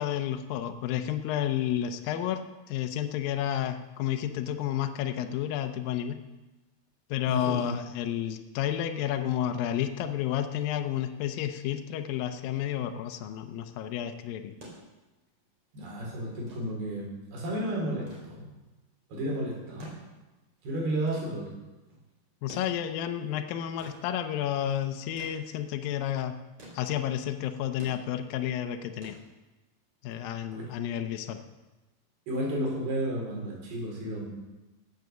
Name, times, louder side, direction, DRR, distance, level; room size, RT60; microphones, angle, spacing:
voice 1, 0.0-6.2 7.1-14.5 22.4-26.4 26.7-29.2 30.0-31.4, left 10 dB, 75° left, 7 dB, 2.4 m, -31 dB
voice 2, 7.3-7.6 15.7-18.5 19.1-19.9 20.6-21.5 30.5-30.6 32.3-34.2, right 1 dB, 75° right, -2 dB, 6.1 m, -32 dB
sound 1, 14.5-29.9 31.1-31.2, right 1 dB, 35° right, 4.6 m, -52 dB
17.0 x 8.3 x 6.9 m, 1.1 s
omnidirectional pair, 4.5 m